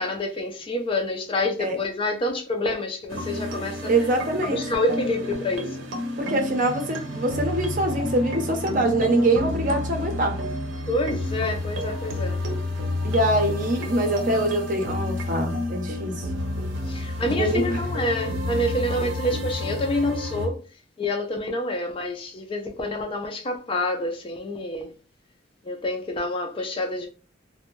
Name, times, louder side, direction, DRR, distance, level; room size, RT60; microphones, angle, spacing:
voice 1, 0.0-3.9 4.4-5.7 10.9-12.4 16.9-20.6 21.0-24.9 25.7-27.1, left 1 dB, 25° left, 0.4 m, -27 dB
sound 1, 3.1-20.5, left 1 dB, 85° right, 0.6 m, -30 dB
voice 2, 3.9-4.6 6.2-10.4 13.0-16.3 17.2-17.8, right 1 dB, 45° right, 0.6 m, -24 dB
2.5 x 2.1 x 3.0 m
head